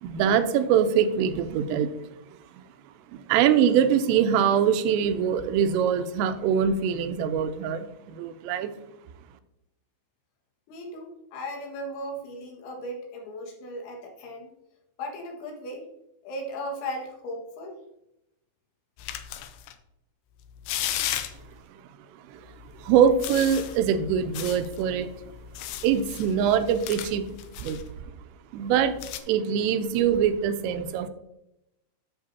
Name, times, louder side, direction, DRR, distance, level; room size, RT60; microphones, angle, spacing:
voice 1, 0.0-1.9 3.1-8.7 22.8-25.1 25.8-27.4 27.6-27.8 28.5-29.0 29.3-31.1, right 8 dB, 90° right, 10 dB, 3.3 m, -23 dB
voice 2, 10.7-14.5 15.0-15.9 16.2-17.8, equal, 70° left, 0 dB, 3.8 m, -36 dB
sound 1, 19.0-19.7 20.4-21.6 22.5-27.8 28.7-29.2, left 11 dB, 85° left, 2.5 m, -36 dB
12.0 x 6.8 x 2.7 m, 0.85 s
omnidirectional pair, 5.8 m